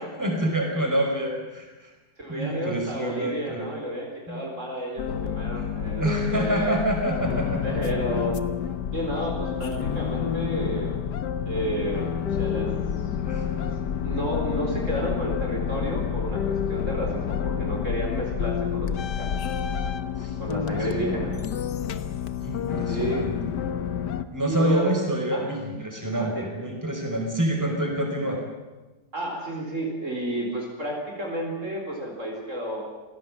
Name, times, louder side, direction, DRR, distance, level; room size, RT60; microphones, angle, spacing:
voice 1, 0.0-1.9 2.3-3.7 4.3-4.4 5.5-5.6 5.9-7.9 13.2-13.5 20.2-21.4 22.4-23.5 24.3-28.4, right 1 dB, 10° right, 2 dB, 5.1 m, -28 dB
voice 2, 2.2-6.0 6.3-6.8 7.6-8.4 8.9-11.0 11.5-12.1 12.4-12.7 13.6-13.7 14.0-19.3 20.4-21.3 22.9-23.3 24.5-24.9 25.3-25.5 26.1-26.4 29.1-33.0, right 1 dB, 50° right, 0 dB, 4.7 m, -31 dB
sound 1, 5.0-24.2, left 8 dB, 90° left, 1.7 m, -29 dB
27.5 x 17.0 x 8.8 m, 1.2 s
omnidirectional pair, 1.8 m